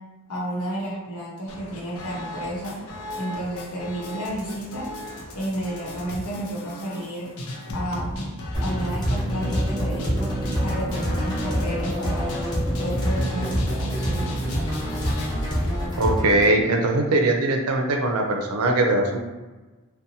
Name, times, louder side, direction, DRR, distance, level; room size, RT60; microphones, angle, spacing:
voice 1, 0.3-2.7 3.2-4.9 5.3-7.3 7.7-10.3 10.6-12.4 12.8-14.3, right 1 dB, 85° left, -5 dB, 0.9 m, -31 dB
sound 1, 1.5-15.9, left 1 dB, 70° left, 0.5 m, -35 dB
sound 2, 8.5-16.5, equal, 20° left, 0.7 m, -26 dB
sound 3, 9.0-16.3, left 2 dB, 25° right, 0.4 m, -39 dB
voice 2, 16.0-19.2, right 2 dB, 90° right, 3 dB, 0.4 m, -21 dB
2.6 x 2.1 x 2.7 m, 1.2 s
head